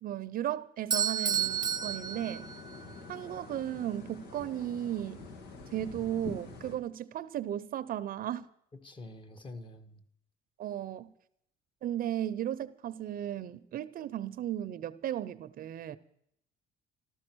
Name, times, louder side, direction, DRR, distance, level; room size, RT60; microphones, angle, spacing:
voice 1, 0.0-2.5 3.1-5.2 5.7-8.5 10.6-11.1 11.8-16.0, right 11 dB, 60° right, 0.8 m, -35 dB
Bell / Doorbell, 0.9-3.0, right 8 dB, 25° right, 0.7 m, -31 dB
sound 1, 1.3-6.8, left 4 dB, 75° left, 2.6 m, -47 dB
voice 2, 8.8-10.0, left 2 dB, 30° left, 1.8 m, -47 dB
14.0 x 12.5 x 6.2 m
cardioid pair, 110°, 17 cm